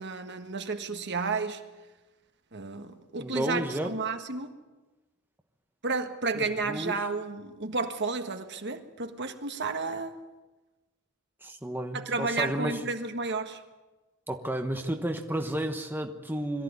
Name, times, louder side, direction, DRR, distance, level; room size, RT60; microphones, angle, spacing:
voice 1, 0.0-1.6 2.5-4.5 5.8-10.1 11.9-13.6, right 3 dB, 55° right, 1.6 m, -32 dB
voice 2, 3.2-3.9 6.4-7.0 11.4-12.8 14.3-16.6, right 1 dB, 10° right, 1.3 m, -32 dB
22.5 x 14.0 x 9.6 m
head